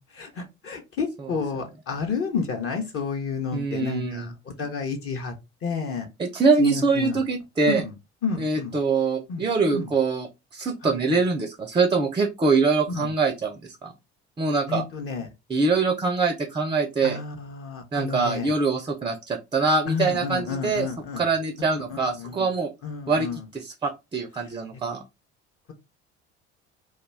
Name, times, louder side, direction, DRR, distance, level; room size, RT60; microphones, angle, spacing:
voice 1, 0.1-5.3 5.6-6.1 6.6-7.2 7.7-7.9 8.2-8.8 9.3-9.5 9.7-9.9 10.8-11.2 12.9-13.1 14.7-15.3 17.0-18.5 19.9-21.2 21.7-22.5 22.8-23.4, left 5 dB, 40° left, 0.7 m, -31 dB
voice 2, 3.5-4.3 6.2-7.8 8.4-13.9 14.4-14.8 15.5-17.2 17.9-20.9 21.2-22.7 23.1-25.0, right 4 dB, 15° right, 0.4 m, -24 dB
2.2 x 2.2 x 3.2 m
figure-of-eight pair, 55°, 35 cm